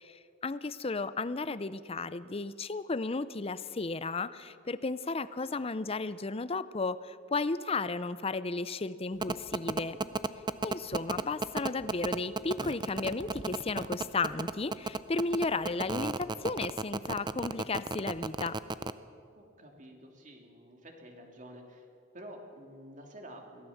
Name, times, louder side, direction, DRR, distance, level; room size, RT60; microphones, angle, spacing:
voice 1, 0.0-10.0 10.6-18.6, left 3 dB, 30° left, 15 dB, 0.6 m, -34 dB
sound 1, 9.2-18.9, right 3 dB, 25° right, 0.5 m, -32 dB
voice 2, 19.3-21.9 22.1-23.7, equal, 40° right, 2 dB, 2.8 m, -49 dB
22.5 x 16.5 x 7.2 m, 2.5 s
head